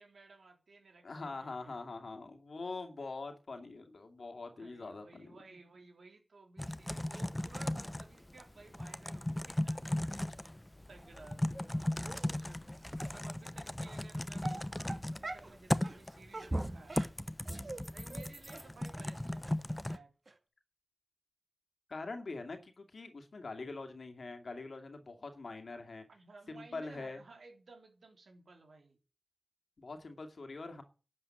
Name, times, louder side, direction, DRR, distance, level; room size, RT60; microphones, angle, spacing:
voice 1, 0.0-1.8 4.3-9.8 10.9-17.0 17.9-20.1 25.7-25.8 26.1-29.0, right 3 dB, 85° right, 3.7 m, -57 dB
voice 2, 1.0-5.3 21.9-26.0 26.5-27.2 29.8-30.8, left 3 dB, 75° left, 2.4 m, -44 dB
Typing, 6.6-20.0, left 1 dB, 20° left, 0.9 m, -37 dB
Dog, 12.0-12.4 13.0-13.1 13.9-14.0 14.4-15.5 15.8-16.0 16.3-17.8 18.1-18.2 18.5-18.6 19.0-19.1 19.4-19.5 19.9-20.0 20.3-20.4, right 2 dB, 60° right, 2.1 m, -45 dB
sound 1, 15.7-16.1 16.5-16.9 17.5-18.9, right 1 dB, 20° right, 2.2 m, -40 dB
12.0 x 7.8 x 8.9 m
cardioid pair, 40°, 0 cm